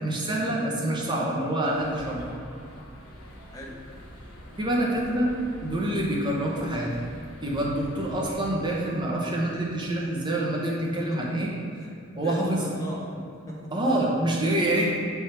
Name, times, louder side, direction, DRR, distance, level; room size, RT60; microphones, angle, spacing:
voice 1, 0.0-2.2 4.6-5.3 5.6-7.0 7.4-11.5 12.1-12.6 13.7-15.0, right 1 dB, 20° right, -3 dB, 0.8 m, -26 dB
sound 1, 1.7-8.6, equal, 80° left, 1.1 m, -45 dB
voice 2, 3.5-3.8 11.1-11.2 11.8-11.9 12.2-13.7, equal, 15° left, -3 dB, 0.9 m, -39 dB
7.1 x 3.5 x 4.4 m, 2.4 s
head